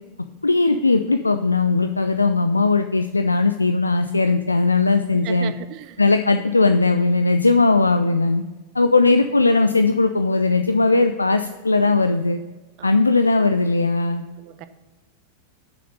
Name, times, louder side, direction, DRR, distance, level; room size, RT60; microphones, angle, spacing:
voice 1, 0.4-5.5 6.0-8.4 8.7-12.4 12.8-14.2, left 3 dB, 80° left, 8 dB, 0.3 m, -18 dB
voice 2, 5.2-6.0 12.8-12.9 14.4-14.7, right 12 dB, 40° right, 12 dB, 0.5 m, -37 dB
7.0 x 6.0 x 5.2 m, 1.2 s
figure-of-eight pair, 90°, 0 cm